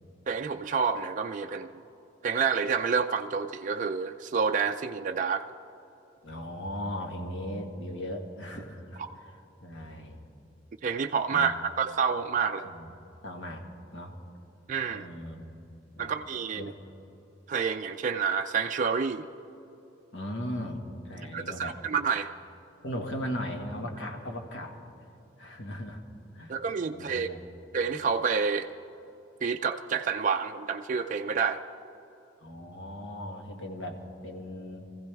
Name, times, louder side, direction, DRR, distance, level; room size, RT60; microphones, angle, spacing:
voice 1, 0.3-1.7 2.2-5.5 10.8-12.6 14.7-15.1 16.0-16.7 17.5-19.2 21.3-22.3 26.5-27.3 27.7-28.7 29.4-31.6, right 6 dB, 45° right, 5 dB, 0.4 m, -28 dB
voice 2, 6.2-9.3 9.6-10.2 11.3-11.5 12.6-12.9 13.2-13.6 13.9-14.1 14.9-15.6 16.0-16.1 16.5-16.7 20.1-21.8 22.8-24.8 25.4-26.0 26.3-26.6 26.9-27.4 32.4-34.9, equal, 85° left, 2 dB, 1.8 m, -37 dB
24.0 x 15.5 x 3.4 m, 2.8 s
head